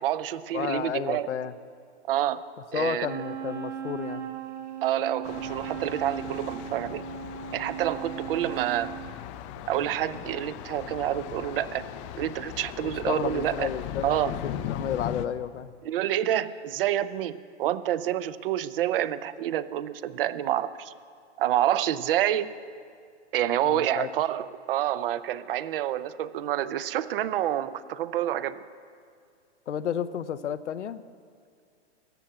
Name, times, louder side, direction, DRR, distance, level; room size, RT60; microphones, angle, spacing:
voice 1, 0.0-1.3 2.1-2.4 2.7-3.1 4.8-7.1 7.5-8.9 9.7-11.9 12.1-13.7 14.0-14.4 15.8-20.9 21.4-22.5 23.3-28.6, right 12 dB, 55° right, 16 dB, 0.6 m, -28 dB
voice 2, 0.5-1.5 2.7-4.3 12.8-15.7 23.6-24.1 29.7-31.0, left 9 dB, 85° left, 11 dB, 0.7 m, -32 dB
Wind instrument woodwind instrument, 3.0-9.2, right 9 dB, 80° right, 1.2 m, -37 dB
Thunder, 5.2-15.3, left 10 dB, 30° left, 0.5 m, -38 dB
15.0 x 7.3 x 9.1 m, 2.2 s
hypercardioid pair, 130°, 35 cm